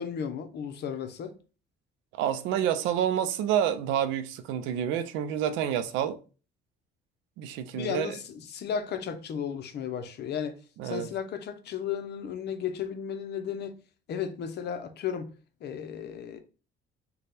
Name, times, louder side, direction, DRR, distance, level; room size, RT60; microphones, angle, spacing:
voice 1, 0.0-1.3 7.7-10.6 10.8-13.8 14.1-15.3 15.6-16.4, left 7 dB, 60° left, 0.7 m, -34 dB
voice 2, 2.2-6.2 7.4-8.2 10.8-11.1, right 9 dB, 90° right, 0.5 m, -28 dB
3.3 x 2.2 x 4.2 m
cardioid pair, 90°, 19 cm